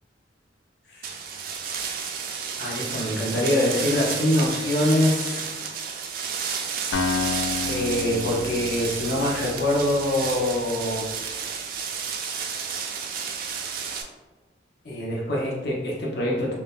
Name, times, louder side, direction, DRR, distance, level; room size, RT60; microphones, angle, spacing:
sound 1, 1.0-14.0, right 6 dB, 50° right, 0.3 m, -31 dB
voice 1, 2.6-5.5 7.6-11.0 14.8-16.6, left 1 dB, 60° left, -3 dB, 0.7 m, -24 dB
Acoustic guitar, 6.9-10.8, left 4 dB, 80° left, 0.3 m, -31 dB
2.6 x 2.1 x 3.6 m, 1.2 s
head